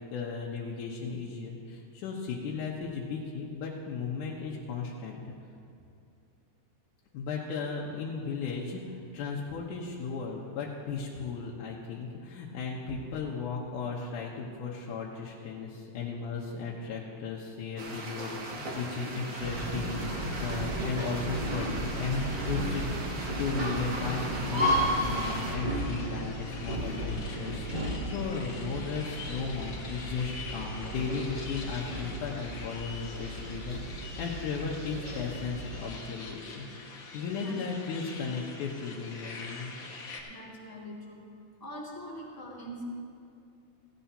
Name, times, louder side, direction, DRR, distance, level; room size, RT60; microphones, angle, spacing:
voice 1, 0.0-5.3 7.1-33.8 34.2-39.7, left 5 dB, 75° left, -4 dB, 2.4 m, -36 dB
sound 1, 17.8-25.5, right 2 dB, 85° right, 0.8 m, -40 dB
sound 2, 19.4-35.9, equal, 25° right, 2.5 m, -34 dB
sound 3, 25.1-40.2, left 4 dB, 50° left, 1.6 m, -45 dB
voice 2, 40.2-41.2 41.6-42.8, equal, 10° left, -5 dB, 1.5 m, -43 dB
16.0 x 16.0 x 2.8 m, 2.5 s
omnidirectional pair, 3.7 m